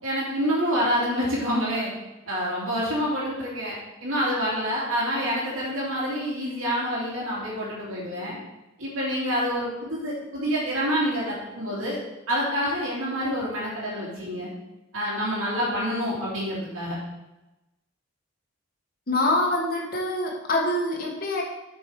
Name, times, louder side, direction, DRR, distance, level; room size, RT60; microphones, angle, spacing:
voice 1, 0.0-1.9 2.3-3.7 4.0-8.4 8.8-12.0 12.3-14.5 14.9-17.0, equal, 85° right, -7 dB, 2.8 m, -27 dB
voice 2, 19.1-21.4, left 1 dB, 45° left, -1 dB, 1.5 m, -25 dB
7.6 x 5.3 x 4.8 m, 0.99 s
head